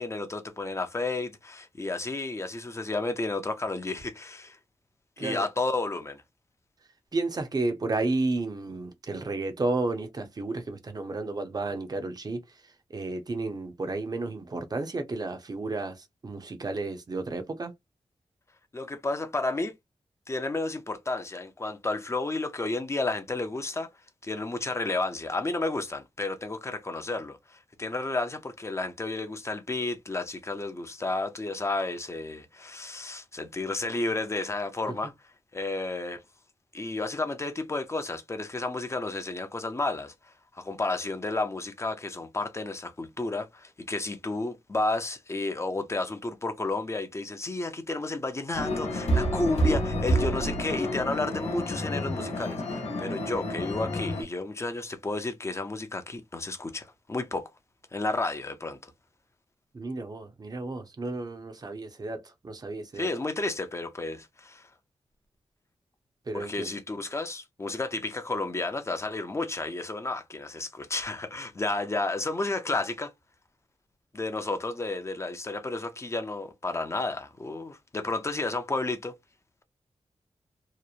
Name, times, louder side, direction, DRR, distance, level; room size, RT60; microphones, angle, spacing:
voice 1, 0.0-4.6 5.2-6.2 18.7-19.7 20.3-23.9 24.2-35.1 35.5-36.2 36.7-40.1 40.5-57.5 57.9-58.9 62.9-64.7 66.3-73.1 74.1-79.2, left 2 dB, 25° left, 0.5 m, -32 dB
voice 2, 7.1-12.4 12.9-16.0 16.2-17.7 59.7-63.1 66.3-66.7, right 2 dB, 35° right, 0.6 m, -32 dB
sound 1, 48.5-54.2, equal, 85° left, 0.7 m, -29 dB
2.8 x 2.0 x 2.4 m
wide cardioid pair, 125°, 11 cm